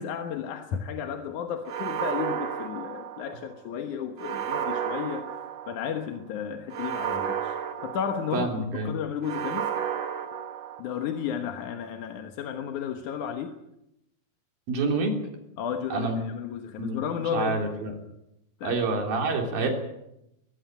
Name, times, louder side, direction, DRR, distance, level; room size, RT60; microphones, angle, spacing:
voice 1, 0.0-9.7 10.8-13.5 15.6-17.6 18.6-18.8, left 8 dB, 65° left, 5 dB, 2.4 m, -33 dB
sound 1, 1.7-3.5 4.2-6.0 6.7-8.6 9.2-11.1, right 8 dB, 55° right, 2.3 m, -32 dB
voice 2, 8.3-8.9 14.7-15.2 15.9-16.2 16.8-17.0 17.3-17.9 18.6-19.7, right 3 dB, 75° right, 3 dB, 5.1 m, -27 dB
21.5 x 15.5 x 9.0 m, 0.85 s
omnidirectional pair, 4.2 m